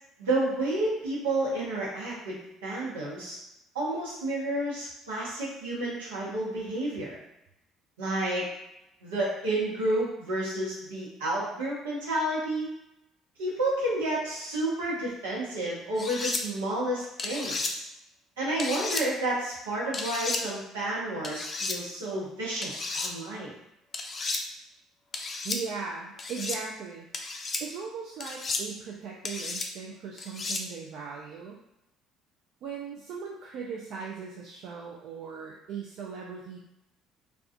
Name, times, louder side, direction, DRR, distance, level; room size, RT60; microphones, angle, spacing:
voice 1, 0.2-3.4 3.7-7.2 8.0-8.5 9.0-12.7 13.4-17.8 18.4-23.5, right 1 dB, 85° right, -6 dB, 0.8 m, -30 dB
sound 1, 16.0-16.4 17.2-17.7 18.6-19.0 19.9-20.4 21.2-21.8 22.6-23.1 23.9-24.4 25.1-25.6 26.2-26.6 27.1-27.6 28.2-28.6 29.2-29.7 30.2-30.6, left 3 dB, 40° left, 0.4 m, -32 dB
voice 2, 25.4-27.1 27.6-31.6 32.6-36.6, right 6 dB, 60° right, -2 dB, 0.3 m, -38 dB
2.3 x 2.3 x 2.5 m, 0.85 s
hypercardioid pair, 55°, 0 cm